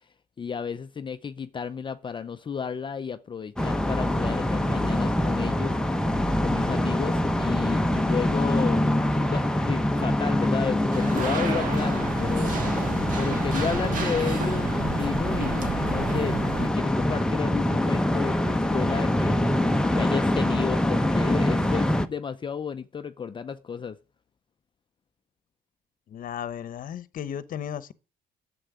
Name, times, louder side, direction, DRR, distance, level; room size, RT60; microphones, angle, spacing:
voice 1, 0.4-5.8 6.4-8.9 9.2-12.5 13.1-19.5 19.9-24.0, left 6 dB, 30° left, 0.7 m, -32 dB
sound 1, 3.6-22.1, left 1 dB, 5° left, 0.9 m, -25 dB
sound 2, 10.9-16.7, right 6 dB, 50° right, 2.0 m, -33 dB
voice 2, 26.1-27.9, left 9 dB, 55° left, 1.0 m, -35 dB
10.0 x 7.8 x 9.5 m
cardioid pair, 110°, 17 cm